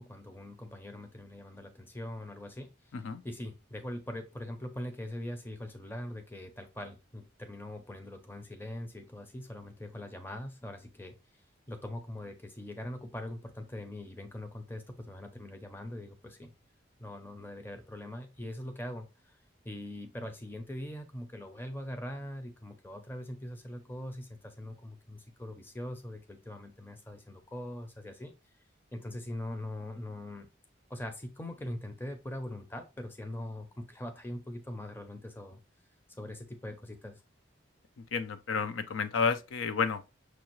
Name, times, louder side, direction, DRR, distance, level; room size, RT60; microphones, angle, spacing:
voice 1, 0.0-2.9 3.2-11.1 11.7-16.5 17.0-19.4 19.6-28.3 28.9-30.5 30.9-35.6 36.2-37.2, left 1 dB, 10° left, 0.5 m, -42 dB
voice 2, 38.1-40.0, left 5 dB, 85° left, 0.5 m, -31 dB
6.1 x 2.3 x 3.0 m
head